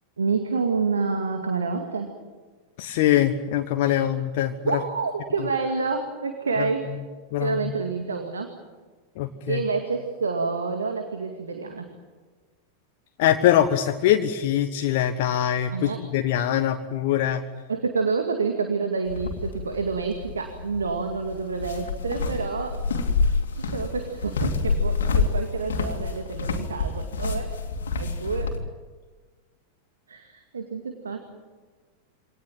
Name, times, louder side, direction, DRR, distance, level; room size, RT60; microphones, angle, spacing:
voice 1, 0.2-2.2 3.9-4.1 4.6-6.9 7.4-8.5 9.5-11.9 15.7-16.0 17.7-22.8 23.5-27.6 28.0-28.5 30.1-31.2, right 4 dB, 70° right, 6 dB, 2.2 m, -28 dB
voice 2, 2.8-4.5 7.3-7.6 9.2-9.6 13.2-17.4, left 11 dB, 50° left, 5 dB, 1.3 m, -23 dB
sound 1, 19.1-28.6, left 4 dB, 65° left, 2.5 m, -28 dB
25.5 x 18.5 x 9.4 m, 1.4 s
figure-of-eight pair, 90°, 0 cm